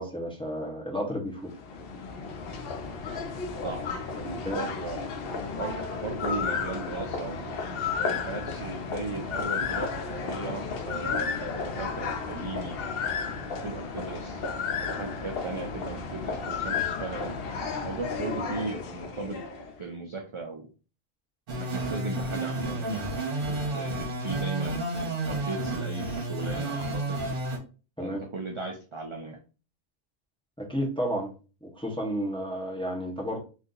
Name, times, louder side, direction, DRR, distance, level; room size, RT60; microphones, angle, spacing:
voice 1, 0.0-1.5 4.4-4.6 28.0-28.2 30.6-31.3 31.6-33.4, equal, 5° left, -1 dB, 0.7 m, -31 dB
sound 1, 1.4-19.8, left 5 dB, 70° left, 0.8 m, -33 dB
voice 2, 4.2-5.0 5.6-7.6 8.0-12.7 13.6-14.4 14.8-17.4 17.8-19.4 19.8-20.7 21.5-23.1 23.5-24.9 25.3-27.2 28.0-29.4, right 3 dB, 45° right, 1 dB, 0.4 m, -37 dB
sound 2, 21.5-27.6, right 2 dB, 60° right, 1.0 m, -31 dB
2.7 x 2.5 x 3.7 m, 0.34 s
omnidirectional pair, 1.1 m